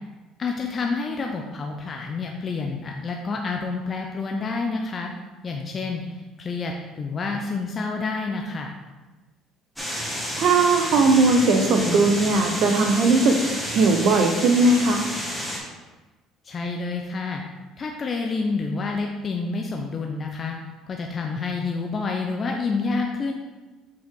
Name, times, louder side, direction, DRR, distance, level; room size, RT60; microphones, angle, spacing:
voice 1, 0.4-5.1 5.4-8.7 16.4-17.4 17.8-20.6 20.9-23.3, left 4 dB, 40° left, 2 dB, 0.6 m, -28 dB
sound 1, 9.8-15.6, equal, ahead, 1.9 m, -30 dB
voice 2, 10.4-13.4 13.7-15.0, right 3 dB, 60° right, 4 dB, 0.9 m, -18 dB
6.2 x 4.6 x 3.8 m, 1.2 s
supercardioid pair, 75°, 0 cm